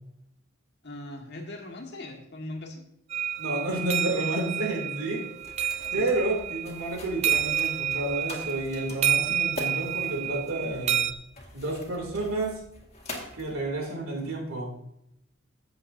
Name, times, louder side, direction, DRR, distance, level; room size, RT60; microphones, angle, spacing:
voice 1, 0.8-2.8 5.9-6.1, left 1 dB, 55° left, 0 dB, 1.7 m, -40 dB
sound 1, 3.1-11.1, right 9 dB, 30° right, 0.4 m, -29 dB
voice 2, 3.4-5.2 5.9-11.1 11.5-12.6 13.3-14.7, right 2 dB, 80° right, 0 dB, 2.8 m, -30 dB
sound 2, 5.4-14.3, left 2 dB, 30° left, 1.9 m, -44 dB
15.0 x 7.7 x 2.7 m, 0.80 s
head